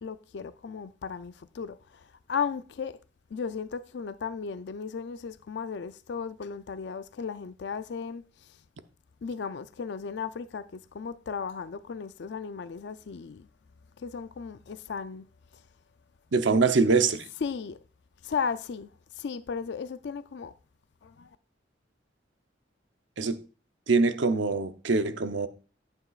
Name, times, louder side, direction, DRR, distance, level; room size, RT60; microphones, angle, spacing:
voice 1, 0.0-3.0 3.3-8.6 9.2-13.5 14.0-15.3 15.5-15.6 17.4-17.8 18.2-20.5 21.0-21.3, left 6 dB, 65° left, 0.4 m, -35 dB
voice 2, 16.3-17.3 23.2-23.4 23.9-25.5, right 4 dB, 90° right, 0.8 m, -24 dB
11.0 x 8.9 x 2.4 m
head